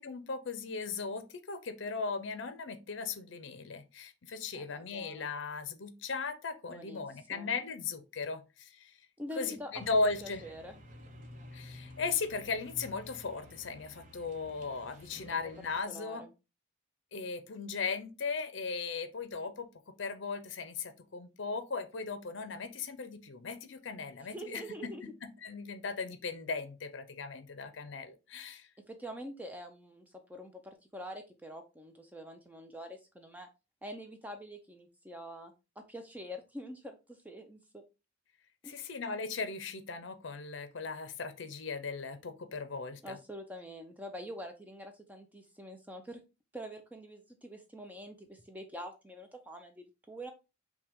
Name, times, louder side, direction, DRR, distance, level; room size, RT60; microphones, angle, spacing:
voice 1, 0.0-8.9 9.4-10.4 11.5-16.2 17.1-24.9 25.4-28.7 38.6-43.2, left 4 dB, 65° left, 0.6 m, -37 dB
voice 2, 4.5-5.3 6.7-7.5 9.2-10.8 15.3-15.4 15.9-16.3 24.3-25.0 28.9-30.0 30.3-33.5 33.8-37.8 38.6-38.9 43.0-46.2 46.5-50.3, equal, 10° right, 0.4 m, -45 dB
sound 1, 9.7-15.8, left 1 dB, 40° right, 0.8 m, -52 dB
5.6 x 2.2 x 3.5 m
head